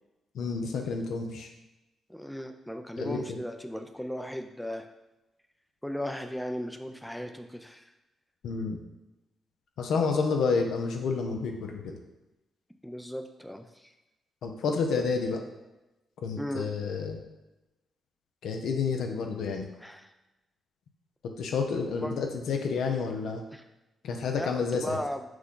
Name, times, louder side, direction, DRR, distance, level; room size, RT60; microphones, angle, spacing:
voice 1, 0.3-1.5 3.0-3.4 8.4-8.8 9.8-11.9 14.4-15.4 16.2-17.2 18.4-19.7 21.4-23.4 24.0-25.0, left 5 dB, 80° left, 3 dB, 0.6 m, -29 dB
voice 2, 2.1-4.9 5.8-7.9 12.8-13.9 16.4-16.7 19.8-20.1 22.0-22.2 23.5-23.7 24.3-25.2, equal, 5° left, 6 dB, 0.4 m, -36 dB
5.9 x 2.3 x 3.7 m, 1.0 s
supercardioid pair, 60°, 0 cm